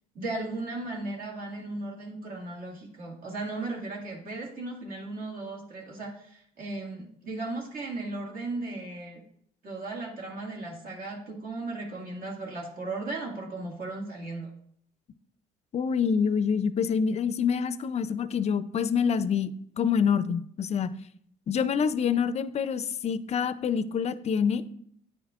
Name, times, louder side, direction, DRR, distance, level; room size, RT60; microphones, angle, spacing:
voice 1, 0.2-9.2 9.6-14.5, right 2 dB, 55° right, -1 dB, 1.9 m, -36 dB
voice 2, 15.7-19.5 19.8-20.9 21.5-24.6, left 6 dB, 40° left, 14 dB, 0.4 m, -26 dB
9.2 x 7.2 x 2.4 m, 0.66 s
cardioid pair, 110°, 17 cm